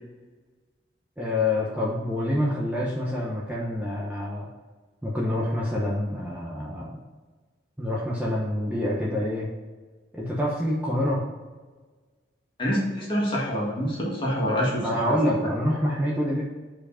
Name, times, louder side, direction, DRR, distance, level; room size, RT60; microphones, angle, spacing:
voice 1, 1.2-4.5 5.0-7.0 7.8-9.5 10.1-11.2 14.8-16.4, left 1 dB, 10° right, -5 dB, 0.8 m, -26 dB
voice 2, 12.6-15.2, equal, 30° left, -4 dB, 1.9 m, -26 dB
5.2 x 4.6 x 5.6 m, 1.4 s
head